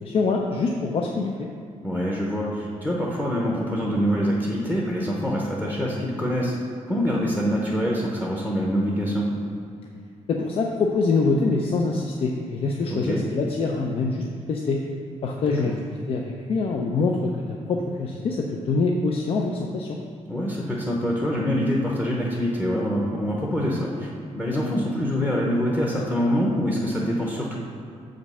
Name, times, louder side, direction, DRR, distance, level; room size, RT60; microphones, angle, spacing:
voice 1, 0.0-1.5 10.3-14.8 15.2-15.7 16.1-20.0, left 3 dB, 50° left, 1 dB, 0.6 m, -25 dB
voice 2, 1.8-6.5 6.9-9.3 12.8-13.2 15.5-15.6 20.3-27.6, equal, 15° left, -3 dB, 0.9 m, -25 dB
7.1 x 5.2 x 5.5 m, 2.4 s
wide cardioid pair, 160°, 12 cm